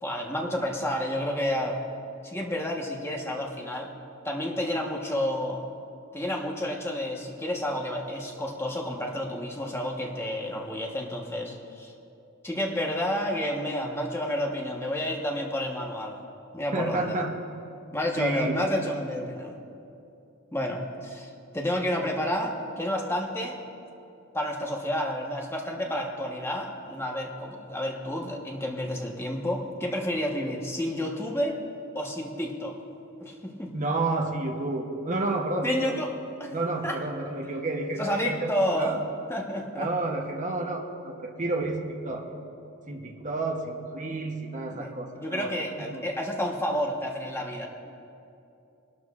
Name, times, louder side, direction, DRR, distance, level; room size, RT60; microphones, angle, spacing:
voice 1, 0.0-1.8 2.2-3.9 4.2-5.6 6.1-11.9 12.4-16.2 16.5-17.2 17.9-19.6 20.5-23.6 24.3-31.6 31.9-32.8 33.2-33.7 35.6-36.1 36.4-36.5 36.8-37.0 38.0-38.9 39.3-39.9 44.7-47.7, left 1 dB, 10° left, 0 dB, 1.1 m, -30 dB
voice 2, 16.7-17.3 18.2-18.6 33.7-36.0 36.5-38.5 38.8-39.0 39.8-42.3 42.9-45.5 45.8-46.1, right 2 dB, 35° right, 1 dB, 0.9 m, -30 dB
19.5 x 12.5 x 2.4 m, 2.7 s
head